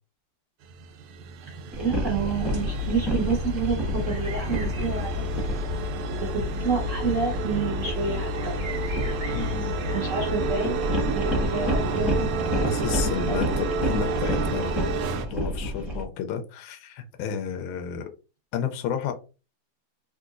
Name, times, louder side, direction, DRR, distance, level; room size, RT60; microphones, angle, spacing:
sound 1, 0.6-15.3, right 5 dB, 80° right, 1.4 m, -31 dB
voice 1, 1.4-5.4 6.2-8.6 9.9-12.7 13.3-13.4, right 5 dB, 45° right, -3 dB, 1.1 m, -29 dB
sound 2, 1.7-16.0, equal, ahead, 0.9 m, -30 dB
sound 3, 2.3-10.3, left 8 dB, 25° right, 1.4 m, -33 dB
voice 2, 9.3-9.8 12.6-14.9 15.3-18.0 18.5-19.1, left 7 dB, 75° left, 5 dB, 1.4 m, -31 dB
3.9 x 2.5 x 2.4 m, 0.31 s
omnidirectional pair, 2.3 m